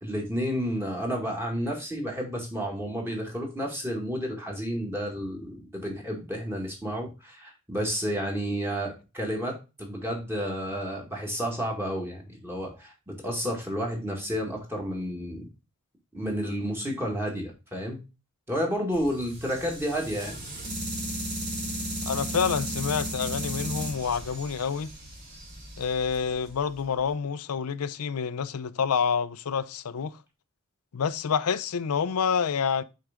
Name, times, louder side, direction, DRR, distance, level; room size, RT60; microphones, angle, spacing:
voice 1, 0.0-15.5 16.1-18.0 18.5-20.4, equal, 10° right, 1.8 m, -31 dB
sound 1, 18.9-27.0, right 1 dB, 45° right, 2.9 m, -35 dB
voice 2, 22.1-24.9 25.8-30.2 30.9-32.8, left 6 dB, 85° left, 0.5 m, -28 dB
6.5 x 4.6 x 3.6 m
head